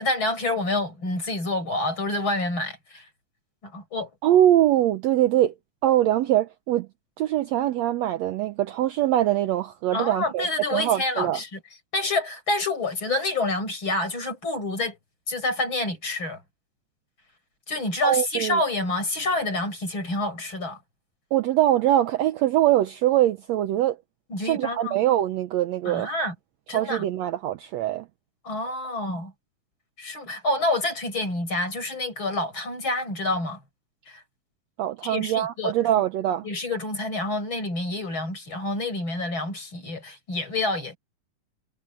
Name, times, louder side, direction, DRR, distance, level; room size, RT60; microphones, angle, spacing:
voice 1, 0.0-3.1 3.6-4.1 9.9-11.6 11.9-15.0 15.3-16.4 17.7-20.8 24.3-25.0 25.9-26.3 26.7-27.1 28.4-29.3 30.0-33.6 34.1-34.2 35.0-36.0 36.4-41.0, left 2 dB, 35° left, 7.2 m, -28 dB
voice 2, 4.2-5.5 5.8-6.9 7.2-10.5 10.7-11.4 18.0-18.6 21.3-24.0 24.4-26.1 26.7-28.1 34.8-36.5, right 13 dB, 75° right, 1.7 m, -23 dB
omnidirectional pair, 3.7 m